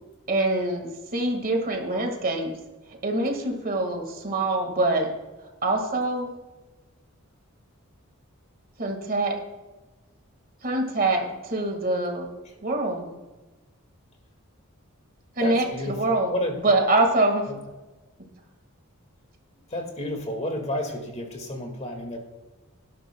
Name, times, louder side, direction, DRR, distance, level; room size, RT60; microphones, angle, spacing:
voice 1, 0.3-2.6 3.0-5.1 5.6-6.3 8.8-9.4 10.6-12.3 12.6-13.1 15.4-17.5, right 2 dB, 45° right, 3 dB, 1.9 m, -25 dB
voice 2, 15.4-16.6 19.7-22.2, left 1 dB, 30° left, 3 dB, 2.0 m, -31 dB
18.5 x 11.5 x 2.3 m, 1.1 s
head